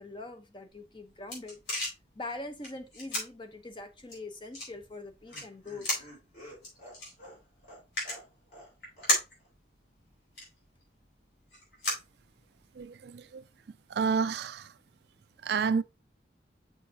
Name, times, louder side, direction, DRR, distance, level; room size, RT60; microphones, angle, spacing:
voice 1, 0.0-1.6 2.1-6.1, left 2 dB, 25° left, 0.8 m, -43 dB
sound 1, 0.7-12.8, left 1 dB, 65° left, 4.0 m, -38 dB
Laughter, 4.7-8.7 9.0-9.1 9.4-9.5, equal, 50° left, 4.3 m, -51 dB
voice 2, 12.8-13.4 13.9-14.7 15.4-15.8, right 5 dB, 60° right, 0.4 m, -30 dB
6.4 x 6.0 x 2.7 m
head